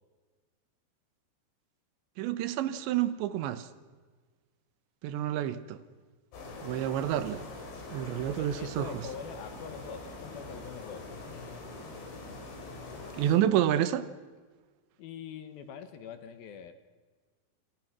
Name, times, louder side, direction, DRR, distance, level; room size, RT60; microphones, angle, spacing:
voice 1, 2.2-3.7 5.0-5.8 6.6-7.4 7.9-8.9 13.2-14.1, right 11 dB, 85° right, 3.4 m, -29 dB
sound 1, 6.3-13.4, left 2 dB, 85° left, 6.9 m, -43 dB
voice 2, 8.4-11.1 15.0-16.7, left 7 dB, 65° left, 2.8 m, -44 dB
28.0 x 28.0 x 6.1 m
omnidirectional pair, 5.1 m